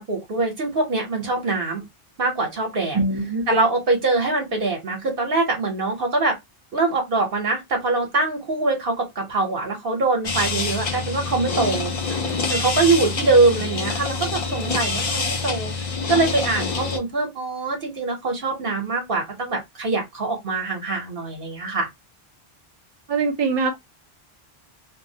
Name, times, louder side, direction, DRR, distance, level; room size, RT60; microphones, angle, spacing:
voice 1, 0.0-1.8 2.2-3.0 3.5-6.4 6.7-11.9 12.5-15.7 16.1-21.9, right 3 dB, 60° right, 1.1 m, -23 dB
voice 2, 2.9-3.4 23.1-23.8, right 3 dB, 35° right, 0.5 m, -22 dB
sound 1, 10.2-17.0, left 4 dB, 45° left, 0.5 m, -26 dB
2.6 x 2.0 x 2.6 m
omnidirectional pair, 1.1 m